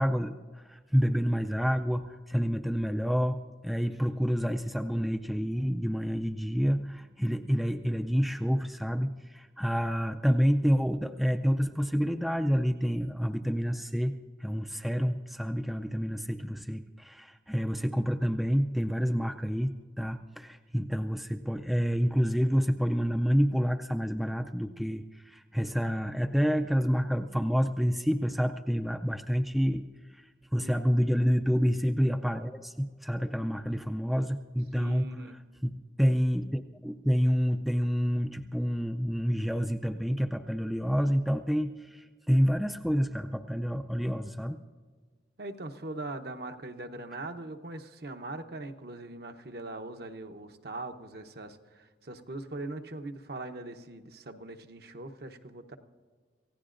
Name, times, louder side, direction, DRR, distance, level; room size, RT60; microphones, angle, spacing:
voice 1, 0.0-14.1 14.4-29.9 30.1-35.2 35.6-44.6, equal, ahead, 6 dB, 0.4 m, -28 dB
voice 2, 34.7-35.4 45.4-55.8, right 2 dB, 60° right, 6 dB, 0.9 m, -41 dB
27.5 x 16.0 x 2.6 m, 1.5 s
head